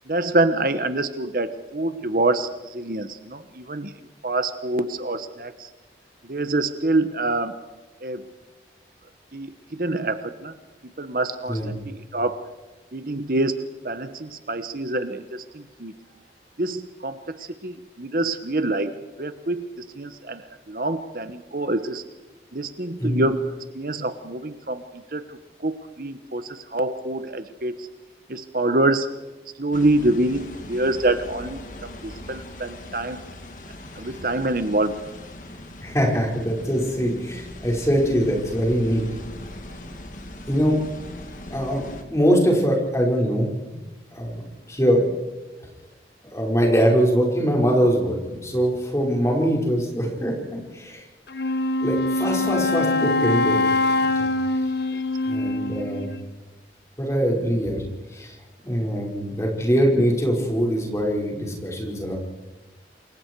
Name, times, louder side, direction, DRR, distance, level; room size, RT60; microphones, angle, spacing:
voice 1, 0.1-3.9 4.2-5.7 6.2-7.5 8.0-8.3 9.3-10.5 11.0-12.4 12.9-15.9 16.6-18.9 19.2-19.7 20.0-22.0 22.5-23.4 23.7-24.8 25.1-25.4 25.6-27.9 28.3-29.1 29.6-33.2 33.9-35.0, right 2 dB, 50° right, 10 dB, 1.1 m, -26 dB
sound 1, 29.7-42.0, left 1 dB, 45° left, 2.6 m, -40 dB
voice 2, 35.8-39.1 40.5-40.8 41.5-43.5 44.1-45.0 46.3-51.0 51.8-53.6 53.9-54.3 55.3-56.1 57.0-57.8 58.1-58.4 58.6-62.2, equal, 15° left, -1 dB, 5.3 m, -23 dB
Wind instrument woodwind instrument, 51.3-56.2, left 2 dB, 65° left, 1.1 m, -23 dB
28.0 x 23.0 x 4.8 m, 1.1 s
head